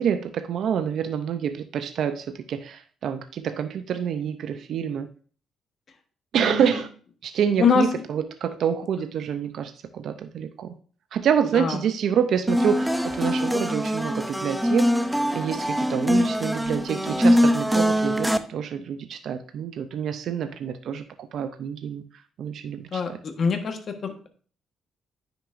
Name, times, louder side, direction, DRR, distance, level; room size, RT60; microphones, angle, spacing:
voice 1, 0.0-5.1 6.3-6.9 7.2-10.7 11.1-22.0 22.4-23.2, right 8 dB, 70° right, 9 dB, 0.5 m, -27 dB
voice 2, 6.3-6.8 7.6-7.9 11.5-11.8 22.9-24.3, left 5 dB, 50° left, 6 dB, 1.2 m, -24 dB
sound 1, 12.5-18.4, equal, ahead, 0.5 m, -23 dB
9.7 x 6.0 x 2.5 m, 0.42 s
cardioid pair, 90°, 0 cm